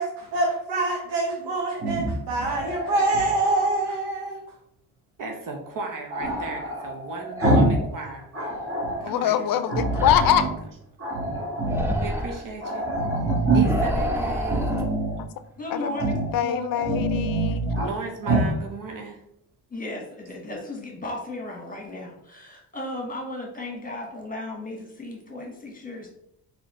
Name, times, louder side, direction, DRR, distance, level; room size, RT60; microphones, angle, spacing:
voice 1, 0.0-4.4, right 2 dB, 85° right, -1 dB, 0.9 m, -25 dB
Growling, 1.7-3.7 6.1-7.9 8.2-9.1 9.7-10.6 11.0-12.0 12.3-12.4 12.6-13.9 14.4-15.2 15.9-16.3 16.7-17.9 18.2-18.5, right 1 dB, 35° right, 1.6 m, -25 dB
voice 2, 5.2-8.2 9.0-9.6 10.3-10.5 11.9-12.9 13.5-14.7 17.8-19.2, right 3 dB, 55° right, 2 dB, 0.9 m, -36 dB
voice 3, 9.0-10.4 15.2-15.3 15.7-16.0 16.3-17.8, left 10 dB, 60° left, 11 dB, 0.5 m, -24 dB
sound 1, 9.9-10.5 11.6-12.4 13.6-14.9, equal, 5° right, 0.7 m, -27 dB
voice 4, 15.6-16.2 16.4-16.6 19.7-26.1, left 2 dB, 20° left, 1 dB, 1.3 m, -35 dB
4.0 x 3.0 x 3.0 m, 0.74 s
supercardioid pair, 70°, 40 cm